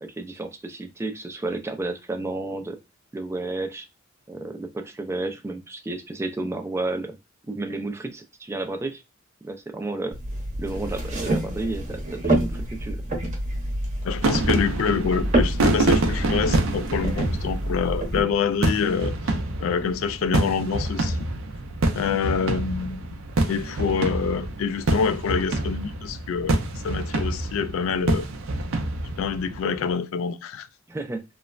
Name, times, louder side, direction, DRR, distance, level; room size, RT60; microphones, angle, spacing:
voice 1, 0.0-2.8 3.1-3.9 4.3-7.2 7.5-9.0 9.4-10.2 10.6-13.0 30.9-31.2, right 2 dB, 15° right, 0.3 m, -31 dB
sound 1, 10.1-18.2, right 1 dB, 35° right, 0.8 m, -27 dB
voice 2, 14.0-19.1 19.6-21.3 22.0-23.2 23.5-26.6 26.8-28.3 29.2-30.7, left 6 dB, 80° left, 0.3 m, -26 dB
sound 2, 14.2-29.9, right 2 dB, 75° right, 0.5 m, -27 dB
3.1 x 2.0 x 2.3 m
head